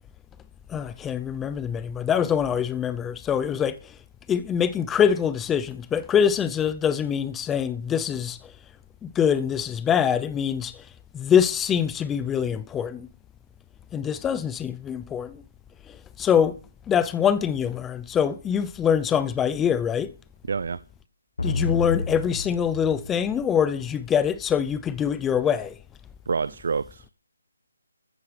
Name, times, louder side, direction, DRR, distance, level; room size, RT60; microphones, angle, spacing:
voice 1, 0.7-3.8 4.3-8.4 9.0-10.8 11.1-13.1 13.9-15.4 16.2-16.6 16.9-20.1 21.4-25.8, left 8 dB, 5° left, 0.6 m, -24 dB
voice 2, 20.5-20.8 26.3-27.1, right 5 dB, 50° right, 0.6 m, -27 dB
sound 1, 21.4-24.1, left 3 dB, 60° left, 1.1 m, -30 dB
14.5 x 8.1 x 6.6 m
hypercardioid pair, 170°, 0 cm